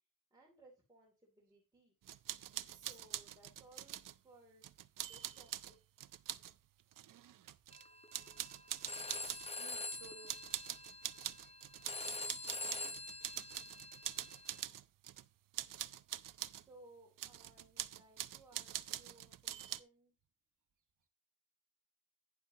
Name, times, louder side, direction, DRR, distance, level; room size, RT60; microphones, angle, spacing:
voice 1, 0.3-1.9 2.7-4.7 5.1-5.8 16.4-20.1, right 2 dB, 10° right, 2.6 m, -63 dB
sound 1, 2.1-4.2 4.6-6.5 6.9-7.8 8.1-9.5 9.9-15.3 15.5-16.6 17.2-19.8, right 12 dB, 85° right, 0.6 m, -45 dB
voice 2, 2.5-3.0 9.5-10.4 12.6-13.0, right 6 dB, 70° right, 1.4 m, -58 dB
Telephone, 7.7-14.6, left 2 dB, 20° left, 0.7 m, -46 dB
11.5 x 9.9 x 2.8 m
wide cardioid pair, 130°, 32 cm